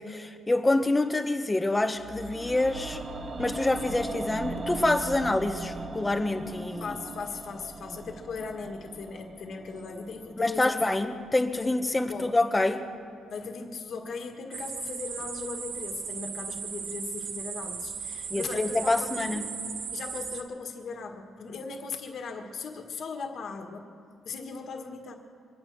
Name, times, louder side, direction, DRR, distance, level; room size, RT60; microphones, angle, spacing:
voice 1, 0.0-3.0 3.4-7.0 10.4-12.9 18.3-19.4, left 2 dB, 15° left, 7 dB, 1.2 m, -26 dB
sound 1, 1.9-12.1 12.3-12.4, right 3 dB, 40° right, 1.1 m, -40 dB
voice 2, 6.8-10.8 12.1-12.3 13.3-19.5 19.9-23.9 24.2-25.2, left 4 dB, 60° left, 4 dB, 1.8 m, -38 dB
sound 2, 14.5-20.4, right 6 dB, 75° right, 1.2 m, -37 dB
24.5 x 9.5 x 6.3 m, 2.2 s
cardioid pair, 90°, 0 cm